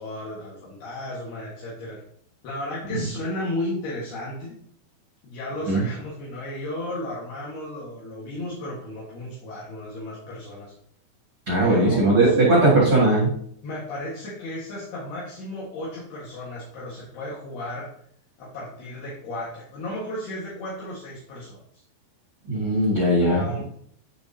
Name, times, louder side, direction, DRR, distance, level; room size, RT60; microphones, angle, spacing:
voice 1, 0.0-2.0 2.4-4.6 5.2-10.7 11.6-12.3 13.6-17.9 18.4-21.6 23.2-23.6, left 1 dB, 70° left, -6 dB, 3.3 m, -34 dB
voice 2, 11.5-13.3 22.5-23.6, right 2 dB, 45° right, -5 dB, 2.0 m, -19 dB
11.5 x 4.7 x 2.7 m, 0.64 s
omnidirectional pair, 5.1 m